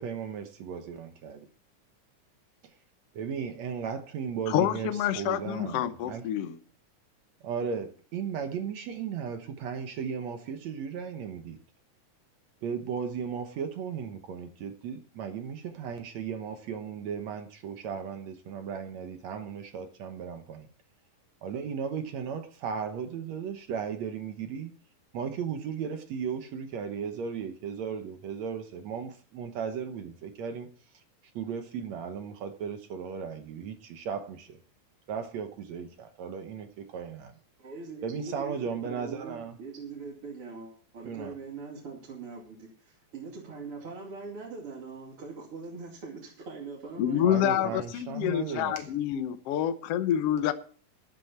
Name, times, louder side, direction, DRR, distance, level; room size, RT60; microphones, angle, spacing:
voice 1, 0.0-1.5 3.1-6.2 7.4-11.6 12.6-20.7 21.4-24.7 25.1-30.7 31.3-34.6 35.1-37.3 38.0-39.6 41.0-41.3 47.2-48.8, right 7 dB, 65° right, 2.0 m, -36 dB
voice 2, 4.5-6.6 47.0-50.5, left 11 dB, 75° left, 1.4 m, -27 dB
voice 3, 37.6-47.7, right 4 dB, 45° right, 3.2 m, -42 dB
13.0 x 11.5 x 4.4 m
omnidirectional pair, 4.0 m